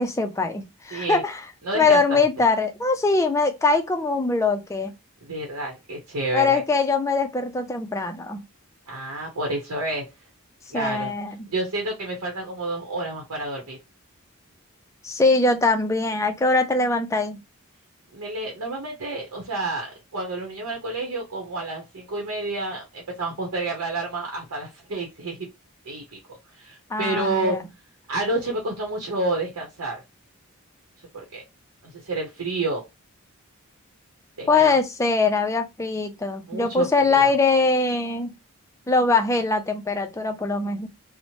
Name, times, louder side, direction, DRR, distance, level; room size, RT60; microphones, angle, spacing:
voice 1, 0.0-1.5 1.7-4.9 6.3-8.4 10.7-11.4 15.0-17.4 26.9-27.6 34.5-38.3 38.9-40.9, left 3 dB, 15° left, 0.3 m, -22 dB
voice 2, 0.9-1.2 1.6-2.2 5.2-6.6 8.9-10.0 10.7-11.1 11.5-13.8 18.1-19.9 20.1-25.5 25.9-26.2 26.6-27.6 28.1-30.0 31.1-31.4 32.0-32.8 34.4-34.8 36.5-37.3, right 2 dB, 85° right, 0.8 m, -29 dB
2.9 x 2.0 x 2.8 m
head